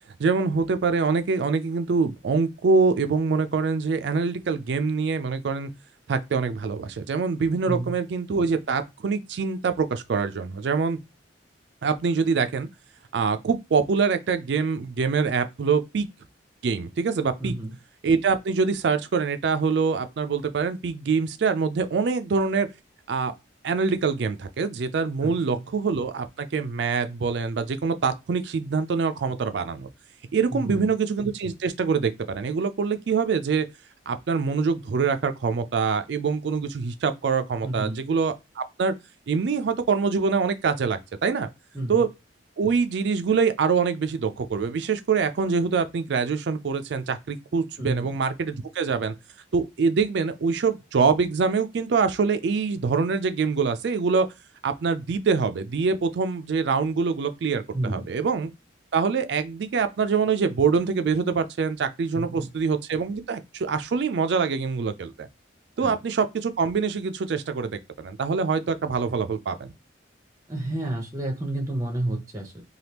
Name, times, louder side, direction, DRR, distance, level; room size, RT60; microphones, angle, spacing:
voice 1, 0.2-5.7 6.1-11.0 11.8-12.7 13.1-16.1 16.6-17.5 18.0-22.7 23.1-23.3 23.6-29.9 30.3-33.7 34.1-38.9 39.3-41.5 41.9-42.1 42.6-49.1 49.5-54.3 54.6-58.5 58.9-65.3 65.8-69.7, right 5 dB, 65° right, 0.4 m, -24 dB
voice 2, 17.4-17.7 25.2-25.6 30.5-30.9 37.6-38.0 41.7-42.1 47.8-48.1 57.7-58.1 62.1-62.5 65.8-65.9 70.5-72.6, right 1 dB, 20° right, 0.6 m, -30 dB
3.3 x 2.3 x 2.9 m
head